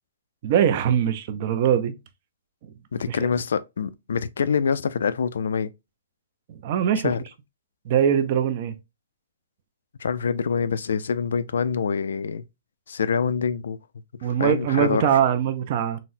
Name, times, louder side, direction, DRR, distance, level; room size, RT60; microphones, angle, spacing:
voice 1, 0.4-1.9 2.6-2.7 3.1-3.2 6.5-7.1 7.9-8.7 14.2-16.0, right 9 dB, 30° right, 0.4 m, -22 dB
voice 2, 2.9-5.7 7.0-7.2 10.0-12.4 12.9-13.8 14.1-15.1, left 6 dB, 75° left, 0.3 m, -25 dB
3.9 x 2.0 x 2.6 m
hypercardioid pair, 180°, 0 cm